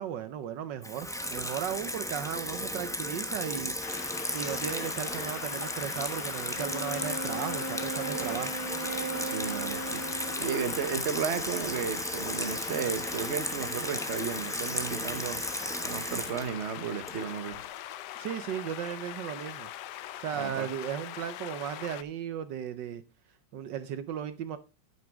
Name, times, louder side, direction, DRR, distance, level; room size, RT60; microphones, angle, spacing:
voice 1, 0.0-3.7 4.3-8.5 18.2-19.7 20.2-23.0 23.5-24.6, right 9 dB, 70° right, 1.3 m, -36 dB
Water tap faucet / Sink (filling or washing), 0.8-17.5, equal, 5° left, 0.4 m, -35 dB
sound 1, 3.8-22.0, left 13 dB, 70° left, 1.1 m, -42 dB
Wind instrument woodwind instrument, 6.5-11.1, right 3 dB, 20° right, 1.5 m, -37 dB
voice 2, 9.2-15.4 15.8-17.6 20.4-20.7, right 7 dB, 45° right, 0.9 m, -34 dB
9.2 x 8.9 x 3.5 m
omnidirectional pair, 2.2 m